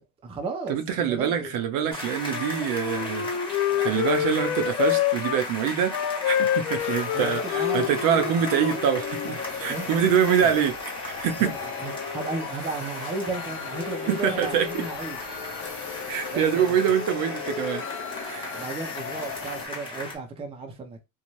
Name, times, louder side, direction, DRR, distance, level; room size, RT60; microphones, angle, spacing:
voice 1, 0.0-1.5 7.1-7.9 8.2-8.3 9.7-10.5 11.4-15.2 16.3-16.8 18.5-21.0, right 3 dB, 15° right, 0.5 m, -34 dB
voice 2, 0.7-3.3 3.5-5.9 6.3-10.7 11.0-11.5 14.1-14.8 16.1-17.8 18.3-18.5, right 8 dB, 50° right, 0.7 m, -25 dB
sound 1, 1.9-20.2, left 2 dB, 10° left, 1.1 m, -37 dB
Wind instrument woodwind instrument, 2.3-5.4 5.8-9.3, left 11 dB, 80° left, 0.7 m, -27 dB
sound 2, 6.8-19.7, left 5 dB, 30° left, 0.7 m, -36 dB
2.7 x 2.2 x 3.0 m
supercardioid pair, 125°, 42 cm